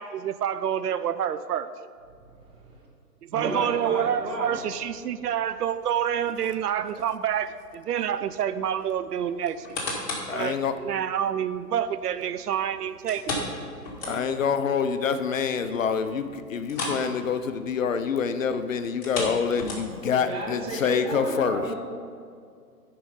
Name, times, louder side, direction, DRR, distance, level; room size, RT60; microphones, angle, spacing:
voice 1, 0.0-1.7 3.2-9.9 10.3-13.2, right 9 dB, 65° right, 13 dB, 0.5 m, -28 dB
voice 2, 2.1-2.7 3.3-4.6 14.0-14.2 20.1-21.7, right 2 dB, 10° right, -3 dB, 1.0 m, -33 dB
sound 1, 9.4-10.4 10.9-11.0 13.1-14.5 14.9-15.0 15.4-15.5 16.6-17.1 17.3-17.6 18.9-20.1 20.8-20.9, left 2 dB, 35° left, 2.3 m, -33 dB
voice 3, 10.3-10.7 14.1-21.6, left 6 dB, 55° left, 10 dB, 0.6 m, -26 dB
10.0 x 5.2 x 5.2 m, 2.2 s
hypercardioid pair, 140°, 50 cm